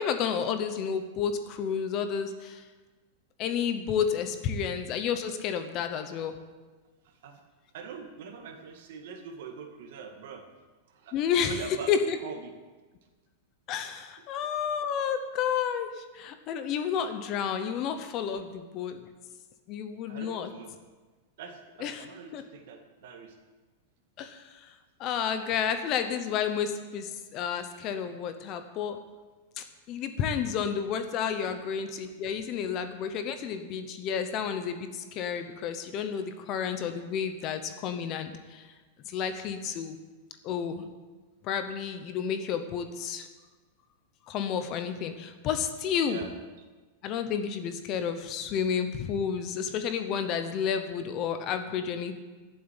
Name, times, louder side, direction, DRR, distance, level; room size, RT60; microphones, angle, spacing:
voice 1, 0.0-2.6 3.4-6.4 11.1-11.6 11.9-12.2 13.7-19.0 19.7-20.5 21.8-22.0 22.3-22.4 24.2-24.7 25.0-29.0 29.6-38.7 39.0-40.0 40.4-40.9 41.4-43.3 44.3-46.2 47.0-52.2, left 7 dB, 25° left, 8 dB, 0.8 m, -31 dB
voice 2, 7.0-7.4 7.7-10.5 10.9-11.2 11.4-11.9 12.2-12.5 18.4-18.5 20.1-20.7 21.4-23.4 31.4-31.6 46.0-46.3 46.6-46.7, right 6 dB, 50° right, 5 dB, 1.9 m, -43 dB
12.5 x 7.7 x 8.9 m, 1.3 s
supercardioid pair, 180°, 0 cm